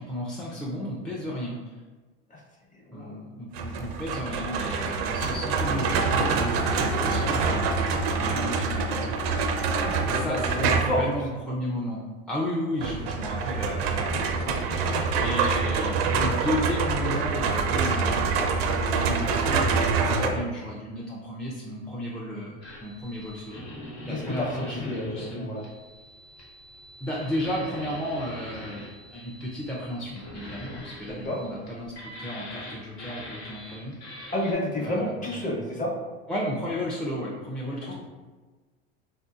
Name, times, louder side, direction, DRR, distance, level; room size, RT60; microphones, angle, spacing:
voice 1, 0.0-1.8 2.9-7.6 8.2-9.1 10.1-20.0 20.3-25.5 27.0-33.9 34.7-35.5 36.3-37.9, equal, ahead, -5 dB, 0.4 m, -34 dB
voice 2, 2.7-3.2 9.8-11.1 20.0-20.3 24.1-24.5 24.8-25.6 31.0-31.4 34.3-35.9 37.9-38.0, left 1 dB, 25° left, -2 dB, 0.8 m, -30 dB
sound 1, 3.5-11.1 12.8-20.3, right 4 dB, 90° right, 0.5 m, -26 dB
sound 2, 22.6-34.5, left 1 dB, 85° left, 1.0 m, -43 dB
3.6 x 2.7 x 2.3 m, 1.3 s
supercardioid pair, 115°, 30 cm